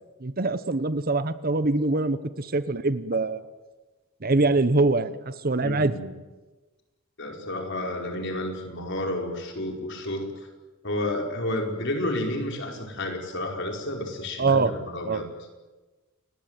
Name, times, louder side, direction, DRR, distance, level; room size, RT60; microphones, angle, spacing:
voice 1, 0.2-3.4 4.2-5.9 14.4-14.7 15.0-15.2, right 3 dB, 45° right, 13 dB, 1.1 m, -24 dB
voice 2, 5.6-6.1 7.2-10.5 10.8-15.3, left 1 dB, 60° left, 2 dB, 5.1 m, -31 dB
29.0 x 19.5 x 9.2 m, 1.2 s
head